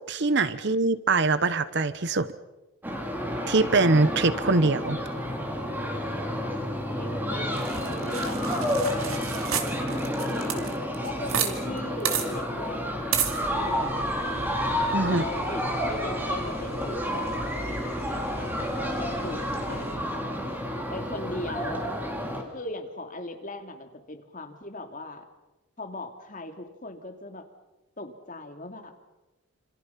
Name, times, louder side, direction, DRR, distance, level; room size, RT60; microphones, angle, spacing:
voice 1, 0.1-2.3 3.5-5.0 14.9-15.2, right 3 dB, 55° right, 15 dB, 0.9 m, -23 dB
sound 1, 2.8-22.4, equal, 10° right, 3.1 m, -30 dB
voice 2, 7.0-13.0 13.4-14.5 15.0-20.1 20.9-21.9 22.5-25.2 25.8-27.5 28.0-28.9, left 1 dB, 40° left, 5 dB, 2.5 m, -39 dB
sound 2, 7.6-11.5 11.8-11.9 12.1-12.3 13.1-13.4, right 8 dB, 80° right, 2.7 m, -30 dB
sound 3, 13.2-19.9, equal, 30° right, 4.4 m, -44 dB
27.0 x 27.0 x 5.8 m, 1.0 s
head